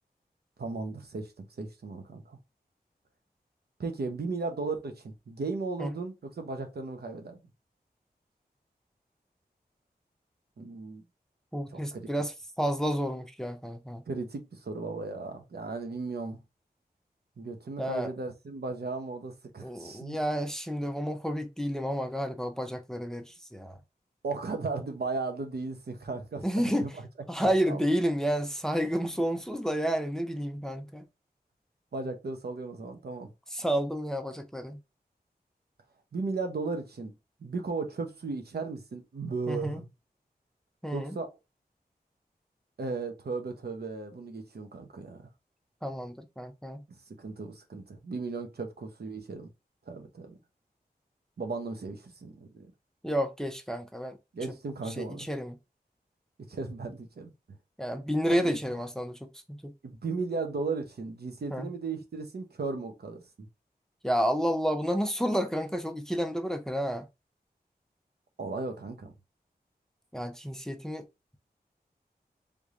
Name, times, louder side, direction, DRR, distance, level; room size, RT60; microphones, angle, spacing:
voice 1, 0.6-2.4 3.8-7.4 10.6-11.0 11.7-12.1 14.1-16.4 17.4-20.2 24.2-26.9 27.7-27.8 31.9-33.3 36.1-37.1 37.4-39.9 40.9-41.3 42.8-45.3 47.2-49.5 49.9-50.4 51.4-52.7 54.3-55.3 56.5-57.3 58.3-58.6 59.8-63.5 68.4-69.1, right 3 dB, 75° right, 0.8 m, -36 dB
voice 2, 11.5-14.0 17.8-18.1 19.6-23.8 26.4-26.9 27.3-31.0 33.5-34.8 39.5-39.8 40.8-41.2 45.8-46.8 53.0-54.2 54.9-55.6 57.8-59.7 61.5-61.7 64.0-67.1 70.1-71.0, equal, 5° left, 0.6 m, -30 dB
3.4 x 3.3 x 2.5 m
wide cardioid pair, 65°, 17 cm